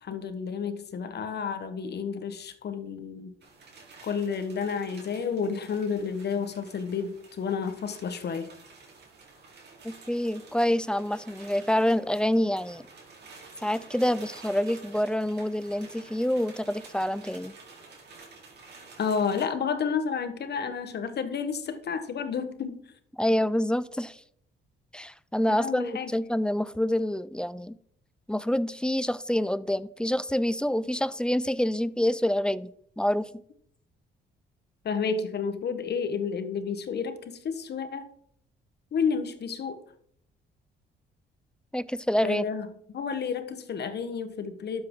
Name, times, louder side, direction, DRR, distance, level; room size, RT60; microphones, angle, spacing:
voice 1, 0.0-3.3 4.0-8.5 19.0-22.9 25.5-26.1 34.8-38.1 38.9-39.8 42.2-42.7 42.9-44.8, left 6 dB, 55° left, 1.3 m, -31 dB
sound 1, 3.4-19.5, right 4 dB, 60° right, 3.7 m, -50 dB
voice 2, 9.8-12.8 13.6-17.5 23.2-24.2 24.9-27.8 28.3-32.7 33.0-33.3 41.7-42.4, left 1 dB, 5° left, 0.4 m, -27 dB
12.0 x 7.7 x 3.8 m
cardioid pair, 90°, 20 cm